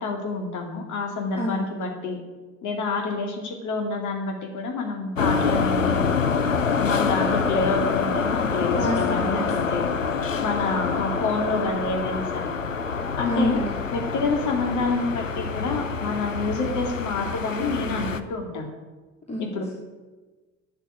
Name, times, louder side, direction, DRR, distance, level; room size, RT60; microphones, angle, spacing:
voice 1, 0.0-2.2 2.6-6.2 6.8-9.9 10.4-12.5 13.2-13.6 13.9-18.7 19.4-19.7, left 3 dB, 50° left, 4 dB, 2.3 m, -28 dB
sound 1, 5.2-18.2, left 5 dB, 90° left, 0.6 m, -26 dB
voice 2, 8.7-9.8 13.3-13.7 19.3-19.7, equal, 15° left, -2 dB, 2.8 m, -28 dB
12.0 x 6.9 x 9.8 m, 1.3 s
figure-of-eight pair, 55°, 38 cm